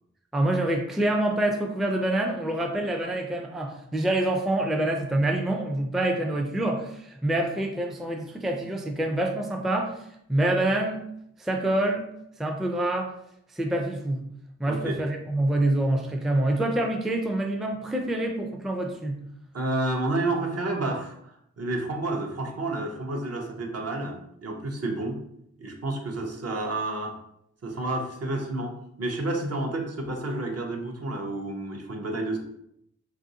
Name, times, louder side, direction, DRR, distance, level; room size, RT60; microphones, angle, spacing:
voice 1, 0.3-11.0 11.4-12.1 12.4-13.1 13.5-14.2 14.6-19.2, right 1 dB, ahead, 2 dB, 0.4 m, -26 dB
voice 2, 14.7-15.0 19.5-24.2 24.4-25.2 25.6-27.1 27.6-32.4, right 2 dB, 55° right, 1 dB, 0.7 m, -30 dB
3.0 x 2.5 x 2.7 m, 0.75 s
cardioid pair, 50°, 30 cm